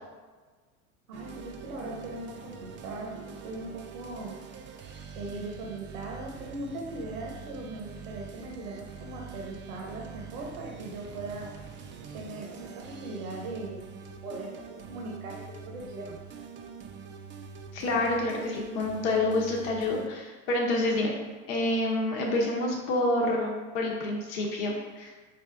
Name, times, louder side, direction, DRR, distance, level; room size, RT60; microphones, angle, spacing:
sound 1, 1.1-20.1, right 6 dB, 30° right, 0.4 m, -45 dB
voice 1, 1.1-4.4 5.1-11.5 12.1-13.8 14.2-16.2, right 2 dB, 80° right, -2 dB, 0.9 m, -39 dB
voice 2, 17.7-21.2 21.5-25.1, left 2 dB, 70° left, -1 dB, 0.9 m, -28 dB
5.0 x 2.7 x 3.4 m, 1.3 s
hypercardioid pair, 85°, 43 cm